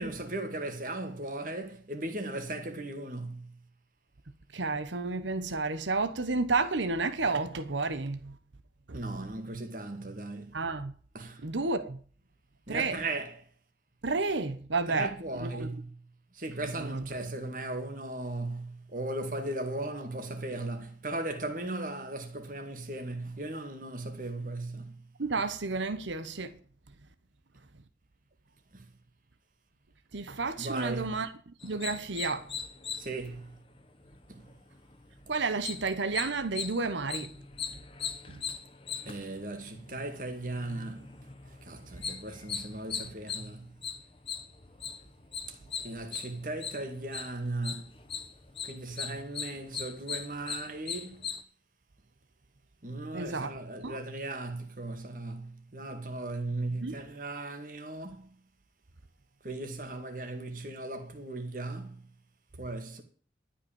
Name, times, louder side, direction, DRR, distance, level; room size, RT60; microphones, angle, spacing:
voice 1, 0.0-3.5 8.9-10.6 11.1-11.4 12.7-13.4 14.9-15.9 16.3-24.9 28.7-28.8 30.6-31.2 33.0-33.5 34.3-34.4 39.1-41.1 41.6-43.7 45.8-47.8 48.6-51.3 52.8-58.3 59.4-62.0 62.6-63.0, right 2 dB, 45° right, 2.1 m, -37 dB
voice 2, 4.5-8.3 8.9-9.0 10.5-10.9 11.4-12.0 12.7-13.0 14.0-15.7 16.6-17.1 25.2-26.6 30.1-32.5 35.3-37.3 38.3-38.4 53.1-53.5 53.8-54.0 56.7-57.0, right 3 dB, 90° right, 1.1 m, -31 dB
sound 1, 31.6-51.4, left 6 dB, 30° left, 1.1 m, -40 dB
12.5 x 5.8 x 8.7 m
head